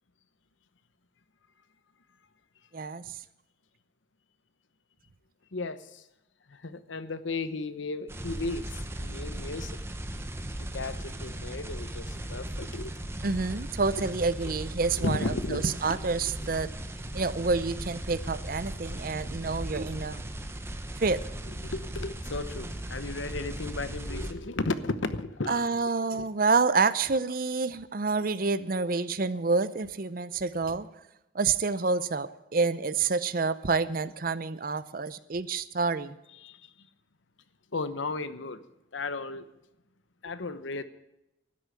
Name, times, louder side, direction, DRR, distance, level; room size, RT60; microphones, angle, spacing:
voice 1, 2.7-3.0 13.2-16.7 17.1-20.2 21.0-21.2 25.5-30.9 31.3-36.2, right 4 dB, 45° right, 0.6 m, -28 dB
voice 2, 5.5-6.0 6.5-9.8 10.6-12.9 14.0-14.1 15.0-16.1 21.6-25.8 26.1-26.3 36.4-36.9 37.7-38.6 38.9-39.5 40.2-40.8, left 3 dB, 75° left, 0.9 m, -35 dB
sound 1, 8.1-24.3, right 1 dB, 15° right, 0.9 m, -37 dB
13.0 x 10.0 x 8.2 m
head